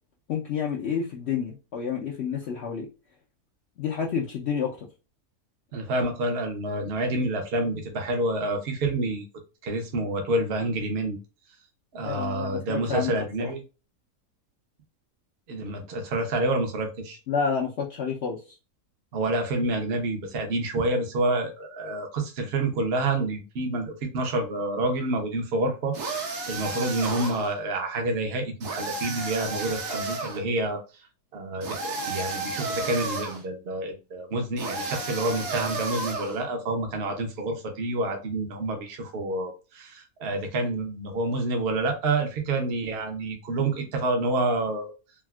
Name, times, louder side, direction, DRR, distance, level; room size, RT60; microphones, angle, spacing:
voice 1, 0.3-2.9 3.8-4.9 12.0-13.5 17.3-18.4, left 6 dB, 65° left, 0.6 m, -29 dB
voice 2, 5.7-9.2 9.6-11.2 11.9-13.6 15.5-17.2 19.1-30.8 31.3-44.9, right 2 dB, 55° right, 0.8 m, -28 dB
sound 1, 25.9-27.5 28.6-30.4 31.6-33.4 34.6-36.4, right 3 dB, 80° right, 1.4 m, -32 dB
3.5 x 2.4 x 2.2 m
omnidirectional pair, 1.6 m